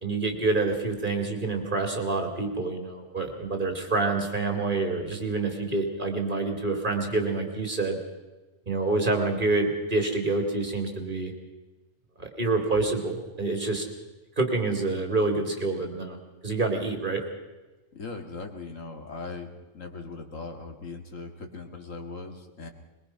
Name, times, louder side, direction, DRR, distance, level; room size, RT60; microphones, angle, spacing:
voice 1, 0.0-8.0 8.7-11.3 12.2-13.8 14.4-16.2 16.4-17.2, right 3 dB, 40° right, 3 dB, 2.6 m, -27 dB
voice 2, 17.9-19.5 19.7-22.7, left 3 dB, 80° left, 4 dB, 2.3 m, -39 dB
22.0 x 21.0 x 5.6 m, 1.2 s
omnidirectional pair, 1.3 m